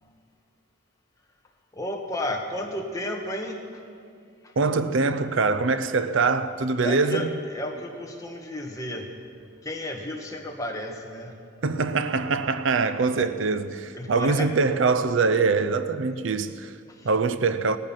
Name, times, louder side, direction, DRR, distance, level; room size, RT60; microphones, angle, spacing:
voice 1, 1.7-3.8 4.4-4.5 6.8-9.1 9.6-11.4 13.1-13.3 13.9-14.5 16.9-17.1, left 1 dB, 15° left, 1.4 m, -33 dB
voice 2, 4.6-7.3 11.6-16.7 17.0-17.8, right 4 dB, 65° right, 0.5 m, -23 dB
18.0 x 14.0 x 5.8 m
head